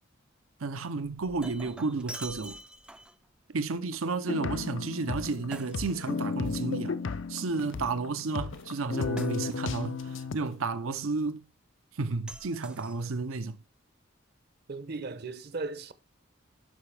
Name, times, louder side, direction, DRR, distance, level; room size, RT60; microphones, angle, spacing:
voice 1, 0.6-2.6 3.5-7.0 7.3-11.4 11.9-13.6, right 3 dB, 85° right, 0.7 m, -32 dB
Shatter, 1.2-3.3 5.5-6.8 9.2-10.0 12.3-13.4, right 1 dB, 5° right, 0.3 m, -46 dB
sound 1, 4.3-4.5 5.2-5.6 6.4-6.8 7.6-8.0 8.5-10.7, left 2 dB, 85° left, 1.7 m, -55 dB
sound 2, 4.3-10.4, left 4 dB, 65° left, 0.5 m, -34 dB
voice 2, 14.7-15.9, right 3 dB, 50° right, 0.8 m, -37 dB
11.5 x 5.9 x 3.4 m
head